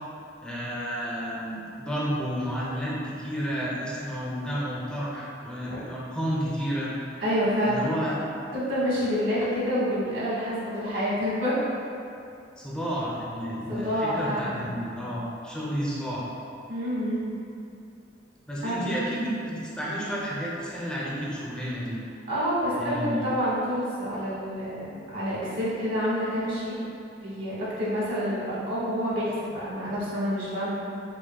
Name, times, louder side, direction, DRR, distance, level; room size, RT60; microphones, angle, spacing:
voice 1, 0.4-6.9 7.7-8.2 12.6-16.3 18.5-22.0 22.8-23.3, equal, 5° left, -7 dB, 0.5 m, -31 dB
voice 2, 7.2-7.9 8.5-11.6 13.7-14.8 16.7-17.4 18.6-18.9 22.3-26.7 27.2-30.7, equal, 85° right, -9 dB, 1.4 m, -28 dB
6.2 x 2.1 x 2.2 m, 2.6 s
head